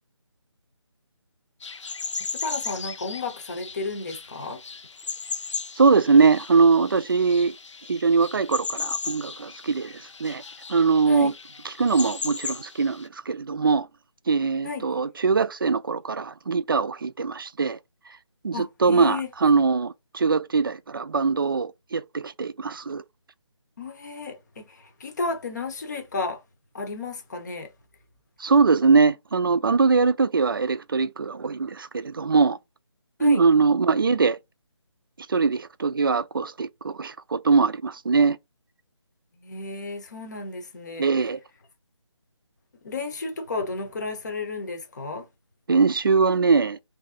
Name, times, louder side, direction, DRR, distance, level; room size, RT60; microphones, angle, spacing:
sound 1, 1.6-13.1, left 5 dB, 75° left, 0.5 m, -36 dB
voice 1, 2.4-4.6 11.1-11.3 14.6-14.8 18.5-19.3 23.8-26.4 26.7-27.7 33.2-33.4 39.3-41.1 42.8-45.3, left 3 dB, 35° left, 0.7 m, -33 dB
voice 2, 5.8-7.5 7.9-10.4 10.7-11.3 11.6-13.9 14.3-17.8 18.4-23.0 28.4-32.6 33.2-34.4 35.3-38.4 41.0-41.4 45.7-46.8, right 4 dB, 45° right, 0.4 m, -22 dB
3.1 x 2.7 x 3.6 m
figure-of-eight pair, 165°, 16 cm